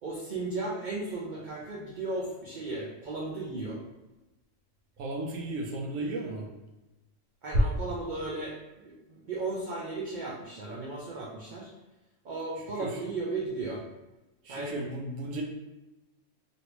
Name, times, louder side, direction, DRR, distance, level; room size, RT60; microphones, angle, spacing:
voice 1, 0.0-3.8 5.9-6.0 7.4-11.7 12.2-13.8 14.5-14.7, right 2 dB, 55° right, -5 dB, 0.5 m, -35 dB
voice 2, 5.0-6.5 12.6-13.0 14.4-15.4, right 2 dB, 90° right, 1 dB, 1.0 m, -35 dB
3.1 x 2.7 x 2.9 m, 1.0 s
omnidirectional pair, 1.3 m